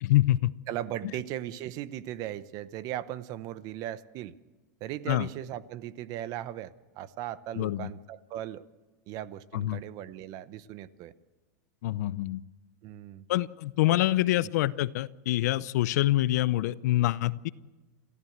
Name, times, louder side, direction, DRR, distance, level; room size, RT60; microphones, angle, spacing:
voice 1, 0.0-0.5 5.1-5.3 7.6-7.9 9.5-9.8 11.8-12.4 13.3-17.5, left 16 dB, 65° left, 18 dB, 0.7 m, -26 dB
voice 2, 0.7-4.3 4.8-8.6 9.1-11.1 12.8-13.3 13.9-14.0, right 12 dB, 40° right, 15 dB, 0.9 m, -38 dB
28.0 x 14.5 x 8.0 m, 1.2 s
supercardioid pair, 155°, 10 cm